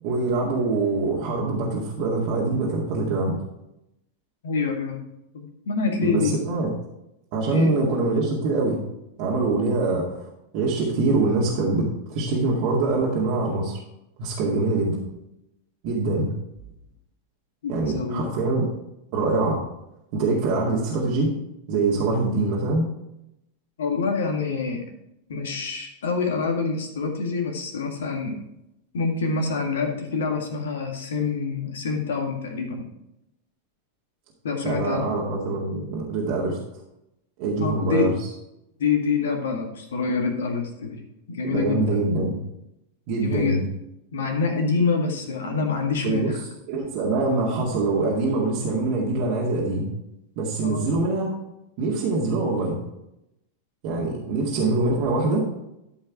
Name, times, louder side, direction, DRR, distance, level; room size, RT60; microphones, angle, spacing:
voice 1, 0.0-3.4 6.0-6.7 7.3-8.8 9.2-10.3 10.5-13.8 14.2-15.0 15.8-16.3 17.7-18.7 19.1-19.6 20.1-21.3 21.7-22.9 34.6-36.6 37.4-38.3 41.4-42.4 43.1-43.6 46.0-46.3 46.7-49.9 50.4-51.3 51.8-52.8 53.8-55.4, right 3 dB, 45° right, -4 dB, 2.1 m, -24 dB
voice 2, 4.4-5.0 5.3-6.4 7.5-7.7 17.6-18.3 23.8-24.8 25.3-28.4 28.9-32.9 34.4-35.0 37.6-38.1 38.8-41.0 41.3-42.0 43.2-43.6 44.1-46.4 50.6-50.9, left 5 dB, 60° left, 4 dB, 1.9 m, -26 dB
13.0 x 5.5 x 4.7 m, 0.86 s
figure-of-eight pair, 90°, 0 cm